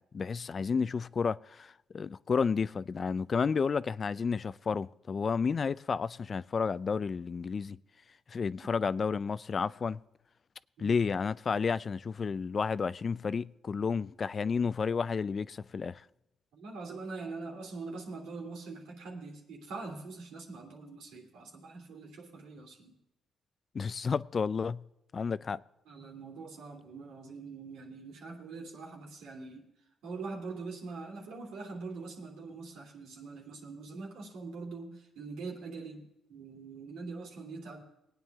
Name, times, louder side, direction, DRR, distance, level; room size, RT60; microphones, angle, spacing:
voice 1, 0.1-7.8 8.3-10.0 10.8-16.0 23.7-24.8 25.1-25.6, left 5 dB, 40° left, 0.4 m, -31 dB
voice 2, 16.5-23.0 25.9-29.7 30.0-37.8, right 4 dB, 85° right, 2.8 m, -43 dB
21.5 x 9.2 x 3.5 m
cardioid pair, 90°, 0 cm